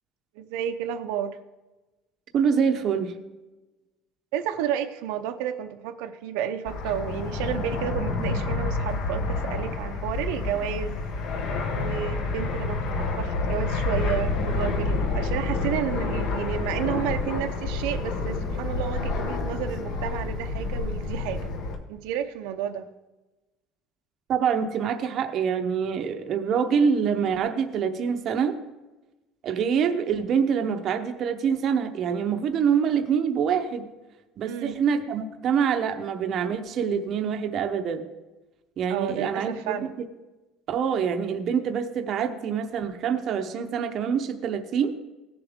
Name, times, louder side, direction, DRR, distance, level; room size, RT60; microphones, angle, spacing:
voice 1, 0.3-1.4 4.3-11.0 11.7-21.5 21.9-22.9 34.4-34.8 38.9-39.9, right 9 dB, 80° right, 6 dB, 0.7 m, -31 dB
voice 2, 2.3-3.1 24.3-28.6 29.4-33.9 34.4-38.1 38.8-39.9 40.7-45.0, right 7 dB, 35° right, 6 dB, 0.7 m, -25 dB
Fixed-wing aircraft airplane, 6.6-21.8, left 3 dB, 50° left, 1.2 m, -28 dB
17.5 x 7.0 x 3.6 m, 1.1 s
cardioid pair, 180°, 0 cm